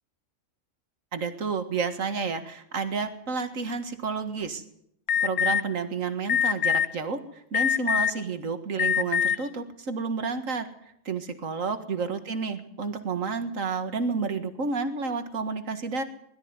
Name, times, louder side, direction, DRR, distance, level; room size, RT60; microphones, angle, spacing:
voice 1, 1.1-4.6 5.2-10.7 11.1-16.0, right 4 dB, 75° right, 8 dB, 2.1 m, -30 dB
Alarm, 5.1-5.6 6.3-6.9 7.5-8.2 8.8-9.4, left 8 dB, 70° left, 1.4 m, -23 dB
21.5 x 13.5 x 9.6 m, 0.75 s
omnidirectional pair, 1.4 m